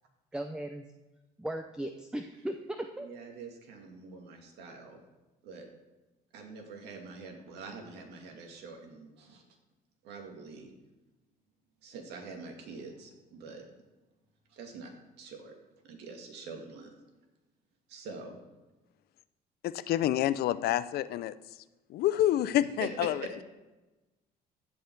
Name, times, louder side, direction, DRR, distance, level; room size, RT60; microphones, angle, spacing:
voice 1, 0.3-0.9 1.4-3.1, right 1 dB, 5° right, 6 dB, 0.6 m, -37 dB
voice 2, 3.0-5.0 5.4-5.7 6.3-9.4 10.0-10.7 11.8-13.6 14.5-14.9 15.2-15.6 15.8-16.9 17.9-18.4 22.8-23.5, right 4 dB, 80° right, 2 dB, 2.2 m, -44 dB
voice 3, 19.6-21.3 21.9-23.1, left 13 dB, 70° left, 15 dB, 0.5 m, -28 dB
15.5 x 5.4 x 4.6 m, 1.1 s
cardioid pair, 110°, 17 cm